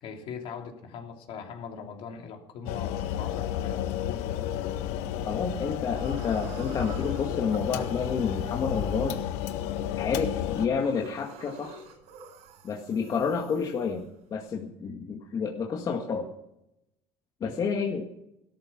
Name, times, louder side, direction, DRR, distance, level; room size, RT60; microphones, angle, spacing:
voice 1, 0.0-4.4, left 6 dB, 55° left, 2 dB, 3.0 m, -41 dB
sound 1, 2.7-10.7, left 11 dB, 80° left, 1.2 m, -32 dB
sound 2, 5.1-5.5 5.9-14.5, right 5 dB, 75° right, 6.8 m, -50 dB
voice 2, 5.3-9.2 10.0-11.8 12.6-14.0 14.3-16.3 17.4-18.1, left 5 dB, 35° left, 1 dB, 1.9 m, -29 dB
17.5 x 12.5 x 6.0 m, 0.83 s
cardioid pair, 150°, 11 cm